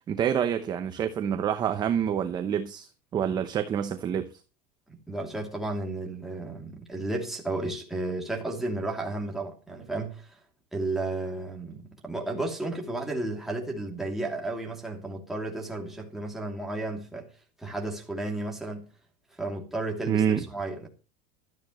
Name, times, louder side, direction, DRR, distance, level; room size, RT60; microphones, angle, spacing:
voice 1, 0.1-4.3 20.1-20.4, right 8 dB, 20° right, 0.8 m, -27 dB
voice 2, 4.9-10.4 10.7-17.3 17.6-18.9 19.3-20.9, right 2 dB, ahead, 2.7 m, -33 dB
17.0 x 13.0 x 3.1 m
supercardioid pair, 175°, 21 cm